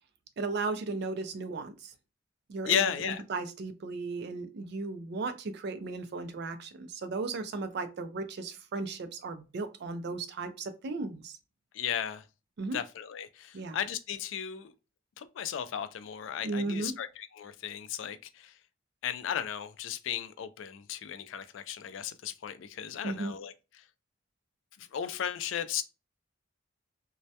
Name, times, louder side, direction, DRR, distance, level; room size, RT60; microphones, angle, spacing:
voice 1, 0.4-1.9 2.5-11.4 12.6-12.8 13.5-13.8 16.4-17.0 23.0-23.3, right 3 dB, 60° right, 0.4 m, -35 dB
voice 2, 2.7-3.2 11.7-12.2 12.7-14.7 15.2-18.5 19.0-23.5 24.8-25.8, left 9 dB, 80° left, 0.3 m, -35 dB
2.2 x 2.1 x 2.7 m
head